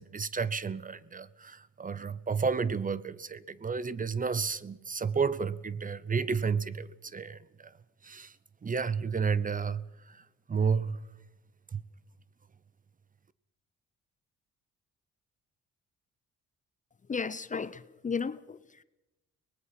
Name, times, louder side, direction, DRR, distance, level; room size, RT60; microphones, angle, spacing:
voice 1, 0.0-7.7 8.0-8.3 8.6-10.2 10.5-11.0 11.7-11.8, right 5 dB, 25° right, 0.7 m, -31 dB
voice 2, 17.1-18.8, left 5 dB, 25° left, 0.6 m, -34 dB
23.5 x 19.5 x 5.9 m
cardioid pair, 90°, 30 cm